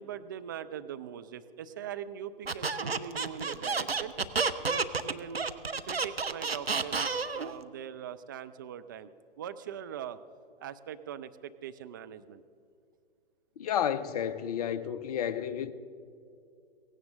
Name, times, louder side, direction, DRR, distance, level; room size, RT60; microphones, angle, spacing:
voice 1, 0.0-4.1 4.6-5.5 5.8-9.1 9.4-10.2 10.6-12.4, right 9 dB, 20° right, 0.3 m, -41 dB
Squeak, 2.5-7.5, right 4 dB, 90° right, 0.7 m, -30 dB
voice 2, 13.6-15.7, left 9 dB, 40° left, 0.7 m, -31 dB
17.5 x 16.0 x 3.7 m
figure-of-eight pair, 115°, 29 cm